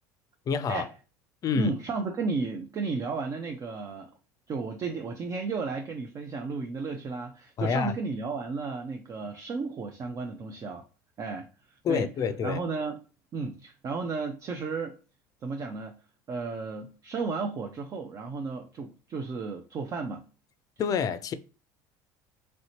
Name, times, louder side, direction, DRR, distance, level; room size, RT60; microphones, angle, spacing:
voice 1, 0.5-0.8 1.4-1.7 7.6-7.9 11.8-12.6 20.8-21.3, left 6 dB, 40° left, 0.4 m, -27 dB
voice 2, 1.5-4.1 4.5-10.8 11.2-13.0 13.3-15.0 15.4-16.0 16.3-20.3, right 4 dB, 40° right, 0.5 m, -33 dB
3.1 x 2.7 x 2.8 m
supercardioid pair, 90°, 9 cm